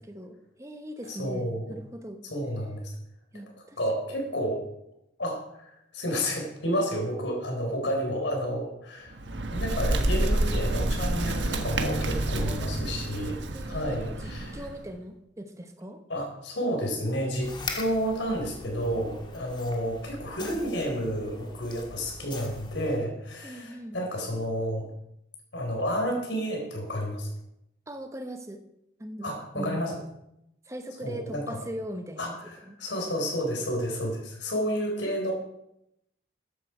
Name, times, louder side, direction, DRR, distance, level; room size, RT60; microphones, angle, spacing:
voice 1, 0.0-2.2 3.3-3.8 12.4-12.8 13.5-16.0 23.4-24.0 27.9-28.6 29.0-29.8 30.7-32.8, equal, 15° right, 7 dB, 1.0 m, -40 dB
voice 2, 1.0-1.8 2.2-2.9 3.8-4.6 5.2-9.2 9.5-13.4 13.6-14.6 16.1-24.9 25.5-27.3 29.2-30.0 31.0-31.6 32.2-35.3, equal, 80° left, 1 dB, 4.3 m, -31 dB
Bird, 9.1-14.8, right 1 dB, 80° right, 1.4 m, -28 dB
sound 1, 17.4-23.0, left 3 dB, 25° left, 1.6 m, -42 dB
14.5 x 10.0 x 4.9 m, 0.83 s
head